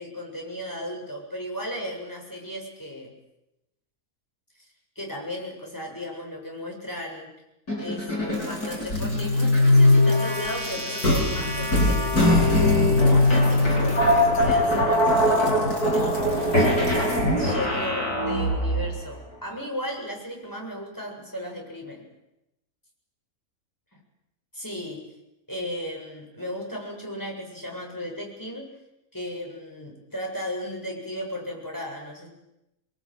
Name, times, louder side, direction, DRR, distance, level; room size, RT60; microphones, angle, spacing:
voice 1, 0.0-3.1 5.0-7.3 7.8-12.5 13.0-22.1 23.9-24.0 24.5-25.0 25.5-28.7 29.1-32.3, left 1 dB, 10° left, 0 dB, 7.6 m, -35 dB
sound 1, 7.7-18.9, left 1 dB, 90° left, 7.6 m, -21 dB
26.0 x 22.5 x 9.2 m, 0.91 s
omnidirectional pair, 1.6 m